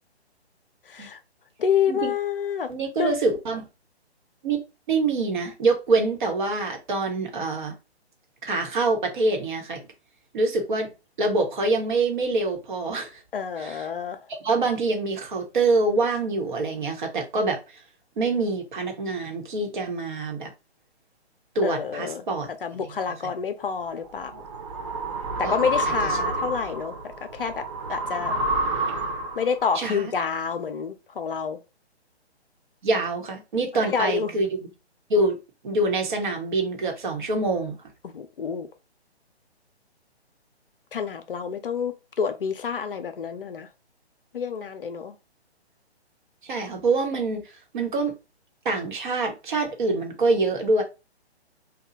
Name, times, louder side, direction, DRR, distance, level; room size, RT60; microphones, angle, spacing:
voice 1, 0.9-1.2 1.6-2.7 3.0-3.2 13.3-14.2 21.6-22.2 22.6-24.4 25.4-27.0 27.3-28.4 29.4-31.6 33.8-34.4 38.0-38.7 40.9-43.7 44.3-45.2, left 6 dB, 55° left, 0.6 m, -28 dB
voice 2, 2.7-3.7 4.4-4.6 4.9-7.7 8.4-9.8 10.3-10.9 11.2-13.2 13.6-13.8 14.4-17.8 18.2-20.5 21.5-22.5 25.4-25.5 29.7-30.1 32.8-34.7 35.1-35.4 35.6-37.8 46.4-48.1 48.6-50.8, right 3 dB, 45° right, 1.1 m, -25 dB
sound 1, 23.8-29.6, right 1 dB, 30° right, 0.5 m, -29 dB
2.9 x 2.3 x 4.0 m
figure-of-eight pair, 140°, 33 cm